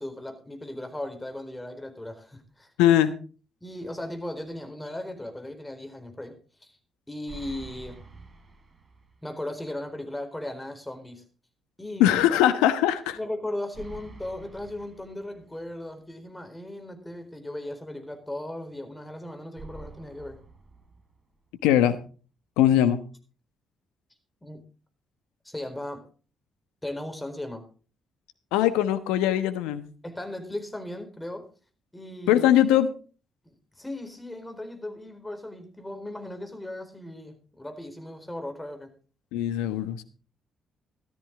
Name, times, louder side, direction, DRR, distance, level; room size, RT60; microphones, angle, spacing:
voice 1, 0.0-3.0 3.6-6.3 6.6-6.8 7.1-8.0 9.2-11.2 11.8-12.2 13.2-20.4 24.4-24.6 25.4-26.0 26.8-27.7 30.0-31.5 31.9-32.5 33.8-38.9, left 1 dB, 15° left, 6 dB, 4.1 m, -37 dB
voice 2, 2.8-3.1 12.0-13.2 21.6-22.0 22.6-23.0 28.5-29.9 32.3-32.9 39.3-40.0, left 11 dB, 75° left, 12 dB, 1.1 m, -21 dB
sound 1, 7.3-9.3 9.6-9.7 13.7-15.7 19.6-21.5, right 3 dB, 45° right, 5.3 m, -47 dB
14.0 x 13.5 x 3.8 m, 0.37 s
hypercardioid pair, 45°, 0 cm